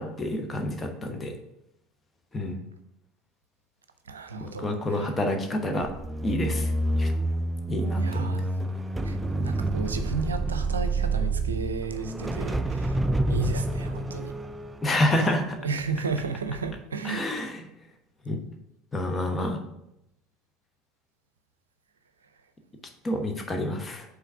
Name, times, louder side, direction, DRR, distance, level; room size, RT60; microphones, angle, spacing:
voice 1, 0.0-1.3 2.3-2.6 4.4-5.9 6.2-6.7 7.0-7.1 7.7-8.2 14.8-15.6 17.0-17.6 18.2-18.4 18.9-19.6 23.0-24.0, left 1 dB, 20° left, 3 dB, 1.2 m, -28 dB
voice 2, 4.1-5.1 8.0-8.4 9.0-12.9 13.3-14.3 15.6-17.5, right 4 dB, 80° right, 9 dB, 0.5 m, -33 dB
sound 1, 5.8-16.1 16.5-16.8, right 2 dB, 15° right, 0.4 m, -28 dB
5.7 x 3.9 x 5.7 m, 0.82 s
figure-of-eight pair, 70°, 0 cm